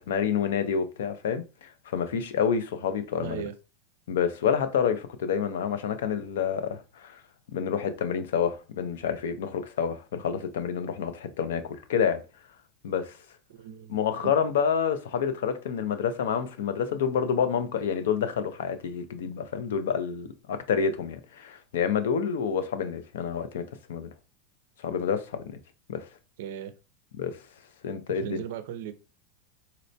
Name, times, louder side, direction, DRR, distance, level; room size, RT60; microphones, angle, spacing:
voice 1, 0.1-3.4 4.1-7.2 7.5-12.2 12.8-13.1 13.9-23.6 23.9-24.1 24.8-25.6 25.9-26.0 27.2-27.3 27.8-28.4, left 7 dB, 85° left, 0.5 m, -28 dB
voice 2, 3.2-3.5 13.5-14.0 14.2-14.3 26.4-26.8 28.1-28.9, right 10 dB, 65° right, 0.4 m, -37 dB
3.9 x 2.1 x 2.6 m
supercardioid pair, 165°, 0 cm